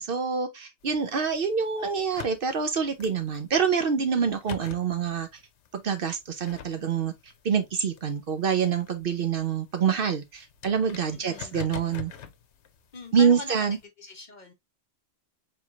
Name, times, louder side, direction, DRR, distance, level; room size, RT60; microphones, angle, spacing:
voice 1, 0.0-5.3 5.7-7.1 7.4-12.1 13.1-13.8, right 6 dB, 55° right, 0.8 m, -26 dB
sound 1, 0.8-13.8, left 7 dB, 75° left, 1.0 m, -47 dB
voice 2, 11.1-11.6 12.9-14.5, left 3 dB, 45° left, 0.7 m, -41 dB
4.6 x 3.8 x 2.3 m
omnidirectional pair, 1.2 m